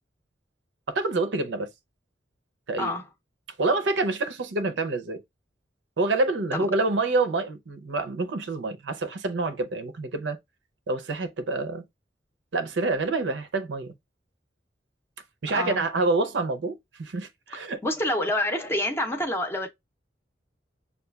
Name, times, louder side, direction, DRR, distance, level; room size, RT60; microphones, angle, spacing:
voice 1, 0.9-1.7 2.7-2.9 3.6-5.2 6.0-10.4 10.9-11.8 12.5-13.9 15.4-17.8, right 3 dB, 85° right, 0.6 m, -27 dB
voice 2, 15.5-15.8 17.8-19.7, left 1 dB, 15° left, 0.6 m, -27 dB
6.6 x 2.3 x 2.3 m
head